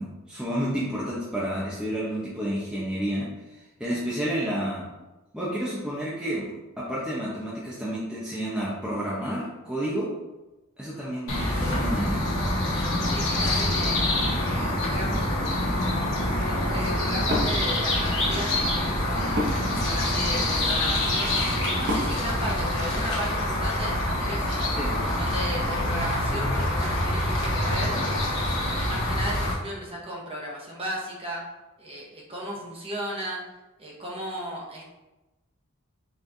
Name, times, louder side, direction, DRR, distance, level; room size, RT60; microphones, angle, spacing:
voice 1, 0.0-3.3 3.8-4.9 5.3-6.5 6.8-10.1 10.8-12.2 24.8-24.9, equal, 5° right, -7 dB, 0.7 m, -30 dB
voice 2, 3.8-4.1 11.3-11.7 13.0-14.1 14.4-15.3 16.4-19.4 19.8-24.7 25.2-28.3 28.7-31.4 31.8-33.4 33.8-34.9, equal, 25° right, -3 dB, 1.0 m, -35 dB
sound 1, 11.3-29.5, left 1 dB, 65° left, 1.2 m, -26 dB
Wood, 21.7-23.2, left 1 dB, 50° right, 0.8 m, -36 dB
5.5 x 3.2 x 2.7 m, 1.0 s
head